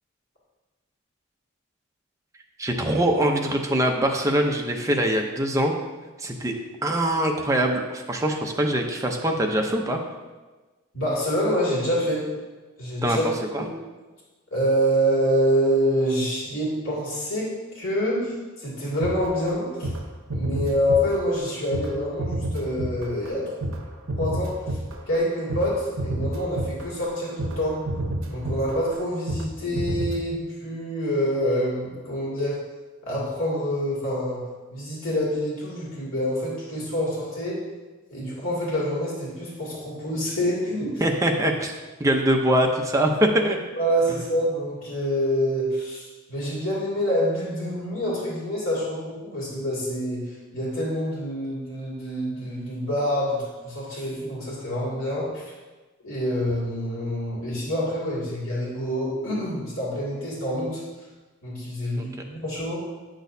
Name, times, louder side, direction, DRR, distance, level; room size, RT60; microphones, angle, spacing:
voice 1, 2.6-5.7 6.2-6.6 6.8-10.0 13.0-13.2 13.5-13.6 41.0-41.7 42.0-43.6 62.0-62.1, right 1 dB, 15° right, 2 dB, 0.7 m, -23 dB
voice 2, 10.9-12.3 12.8-13.2 14.5-19.9 20.3-23.5 24.2-24.8 25.1-27.8 28.3-32.6 33.1-34.4 34.7-37.6 38.1-41.0 43.8-55.4 56.0-60.8 61.4-62.8, equal, 75° left, -6 dB, 2.4 m, -26 dB
sound 1, 19.0-19.6 19.8-20.0 20.3-21.5 21.7-29.5 29.7-30.2, right 1 dB, 70° right, 0.8 m, -30 dB
9.3 x 6.2 x 2.7 m, 1.2 s
head